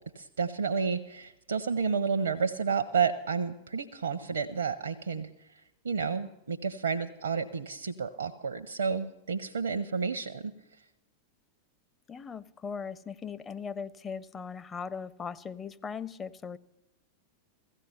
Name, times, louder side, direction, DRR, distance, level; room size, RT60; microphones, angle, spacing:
voice 1, 0.1-5.3 5.8-10.5, right 5 dB, 70° right, 7 dB, 0.7 m, -31 dB
voice 2, 12.1-16.6, left 6 dB, 20° left, 14 dB, 0.6 m, -39 dB
16.5 x 14.5 x 5.8 m, 0.90 s
figure-of-eight pair, 90°, 0 cm